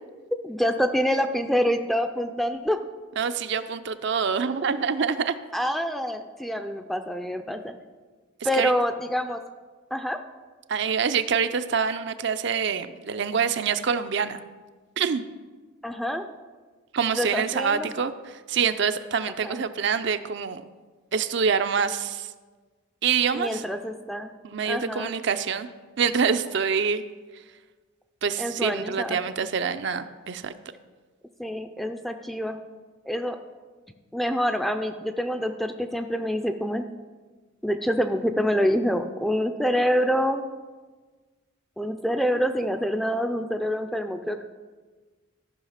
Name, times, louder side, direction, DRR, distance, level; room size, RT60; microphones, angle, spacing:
voice 1, 0.4-2.8 5.5-7.7 8.4-9.4 9.9-10.2 15.8-16.2 17.2-17.9 19.4-19.6 23.3-24.3 24.7-25.1 28.4-29.2 31.4-32.6 33.1-33.4 34.1-36.9 37.6-40.4 41.8-44.4, equal, ahead, 7 dB, 0.4 m, -26 dB
voice 2, 3.2-5.4 8.5-8.7 10.7-14.4 15.0-15.2 16.9-20.6 21.1-22.3 23.0-23.6 24.4-25.7 26.0-27.0 28.2-30.5, right 6 dB, 60° right, 10 dB, 0.5 m, -26 dB
14.0 x 5.5 x 5.7 m, 1.4 s
head